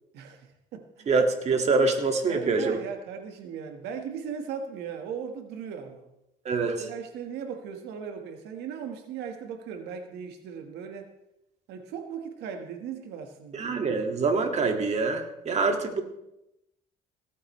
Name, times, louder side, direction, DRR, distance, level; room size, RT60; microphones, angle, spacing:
voice 1, 0.1-1.1 2.2-6.1 6.8-11.1 11.7-13.7, right 7 dB, 85° right, 5 dB, 1.5 m, -38 dB
voice 2, 1.1-2.8 6.5-6.8 13.5-16.0, right 4 dB, 40° right, 4 dB, 2.1 m, -25 dB
17.5 x 14.0 x 3.2 m, 0.87 s
cardioid pair, 110°, 17 cm